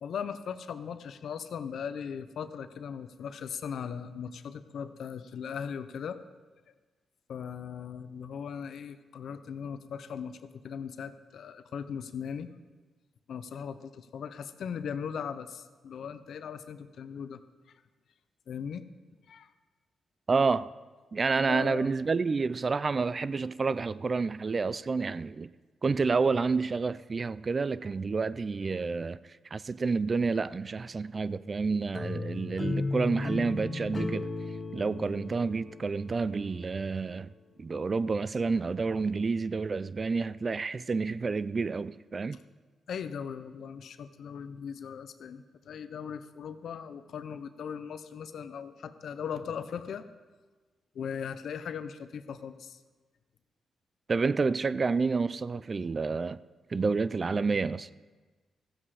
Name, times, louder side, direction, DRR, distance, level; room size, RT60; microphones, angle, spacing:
voice 1, 0.0-6.2 7.3-12.5 13.3-17.4 18.5-18.8 19.3-19.5 21.5-21.9 42.9-50.1 50.9-52.8, left 7 dB, 75° left, 0.6 m, -38 dB
voice 2, 20.3-20.7 21.1-25.5 25.8-29.2 29.5-34.3 34.7-37.3 37.6-42.4 54.1-56.4 56.7-57.9, right 4 dB, 40° right, 0.4 m, -29 dB
sound 1, 31.9-36.8, left 2 dB, 30° left, 0.8 m, -35 dB
15.5 x 7.6 x 4.9 m
cardioid pair, 65°, 0 cm